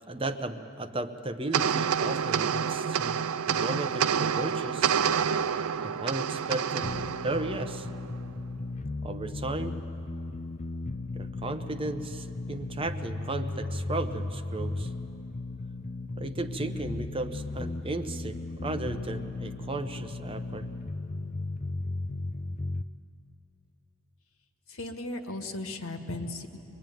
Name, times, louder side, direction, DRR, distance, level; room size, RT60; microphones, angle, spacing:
voice 1, 0.1-5.0 5.8-7.0 7.2-7.9 9.0-9.8 11.1-14.9 16.2-20.7, right 2 dB, 25° right, 9 dB, 0.8 m, -35 dB
sound 1, 1.5-8.2, right 7 dB, 70° right, 0.5 m, -28 dB
sound 2, 6.8-22.8, left 2 dB, 35° left, 0.5 m, -36 dB
voice 2, 24.7-26.6, left 2 dB, 65° left, 5 dB, 1.7 m, -36 dB
24.0 x 21.0 x 9.2 m, 2.9 s
head